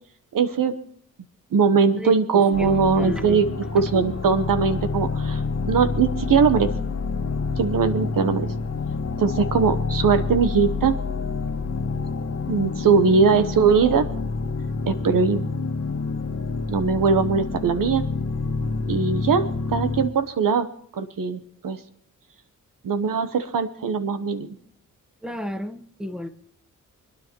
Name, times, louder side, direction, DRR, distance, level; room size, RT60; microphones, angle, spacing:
voice 1, 0.3-0.8 1.5-3.5 3.7-5.4 5.7-6.7 7.6-8.5 9.2-11.0 12.5-14.1 14.9-15.5 16.7-18.0 18.9-20.7 20.9-21.8 22.8-24.5, right 5 dB, 80° right, 10 dB, 1.0 m, -20 dB
voice 2, 2.0-3.4 25.2-26.3, left 1 dB, ahead, 8 dB, 1.4 m, -33 dB
sound 1, 2.5-20.1, left 4 dB, 50° left, 1.5 m, -28 dB
28.0 x 9.8 x 3.0 m, 0.67 s
cardioid pair, 65°, 33 cm